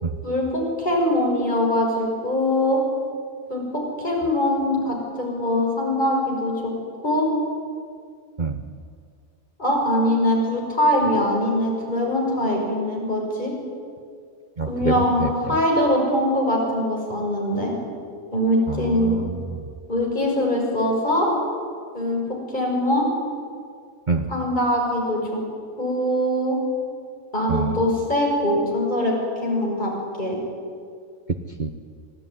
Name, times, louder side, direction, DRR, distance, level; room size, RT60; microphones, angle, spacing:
voice 1, 0.2-2.8 3.5-3.6 4.0-6.7 7.0-7.3 9.6-13.5 14.7-17.7 18.3-19.2 19.9-21.3 21.9-22.2 22.5-23.1 24.3-25.4 25.8-26.6 27.3-29.9 30.2-30.4, left 1 dB, 30° left, -1 dB, 6.6 m, -22 dB
voice 2, 14.6-15.6 18.7-19.6 24.1-24.3 27.5-27.8 31.3-31.7, right 4 dB, 35° right, 6 dB, 1.1 m, -27 dB
26.0 x 18.0 x 9.7 m, 2.2 s
omnidirectional pair, 1.5 m